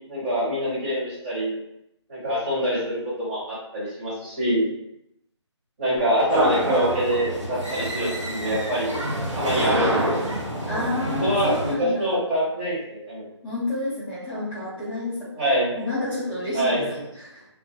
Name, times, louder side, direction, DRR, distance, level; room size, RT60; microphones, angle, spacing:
voice 1, 0.1-1.5 2.1-4.7 5.8-9.0 9.3-10.2 11.2-13.3 15.4-15.7 16.5-16.9, equal, 20° right, -7 dB, 0.8 m, -25 dB
sound 1, 6.0-6.4 6.6-7.2 7.5-8.2 8.5-9.0 9.4-10.0 10.3-10.5 10.7-10.9 11.2-11.3, equal, 45° left, 0.6 m, -34 dB
sound 2, 6.3-11.8, right 1 dB, 80° right, 0.8 m, -27 dB
voice 2, 10.7-12.2 13.4-15.4 15.7-17.4, left 2 dB, 5° right, -17 dB, 0.4 m, -30 dB
2.2 x 2.1 x 2.6 m, 0.81 s
figure-of-eight pair, 155°, 15 cm